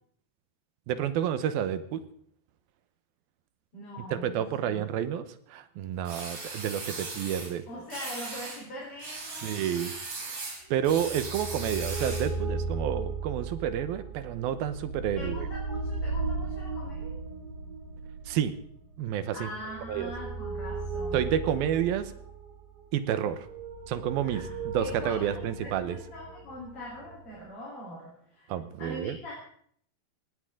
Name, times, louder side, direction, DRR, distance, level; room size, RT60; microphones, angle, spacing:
voice 1, 0.9-2.0 4.1-7.6 9.4-9.9 10.2-10.4 10.7-15.5 18.3-18.5 19.0-19.5 19.9-20.1 21.1-22.1 22.9-23.5 23.9-26.0 28.5-29.2, right 10 dB, 80° right, 12 dB, 2.8 m, -30 dB
voice 2, 3.7-4.9 7.7-9.6 15.1-17.2 19.3-21.3 24.2-28.5 28.8-29.3, equal, 40° left, -4 dB, 4.9 m, -42 dB
sound 1, 6.0-7.5 7.9-8.6 9.0-12.4, right 3 dB, 45° right, 4.8 m, -38 dB
sound 2, 10.8-27.5, right 3 dB, 65° right, 4.5 m, -36 dB
19.0 x 16.5 x 3.8 m, 0.63 s
omnidirectional pair, 4.3 m